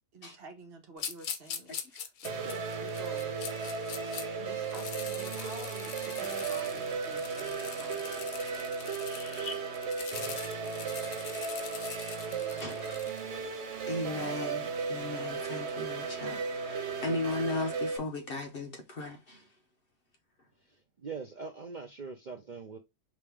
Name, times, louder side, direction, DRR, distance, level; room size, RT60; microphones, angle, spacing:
voice 1, 0.1-3.4 4.4-8.6 12.3-13.1, right 3 dB, 40° right, 1.3 m, -49 dB
sound 1, 1.0-4.3 4.6-13.3, left 8 dB, 70° left, 1.2 m, -43 dB
sound 2, 2.2-18.0, right 5 dB, 90° right, 1.6 m, -35 dB
voice 2, 9.1-9.7 12.5-13.1 13.9-19.5, left 2 dB, 50° left, 0.7 m, -37 dB
voice 3, 20.7-22.8, right 5 dB, 75° right, 0.4 m, -42 dB
5.0 x 3.0 x 3.4 m
omnidirectional pair, 1.7 m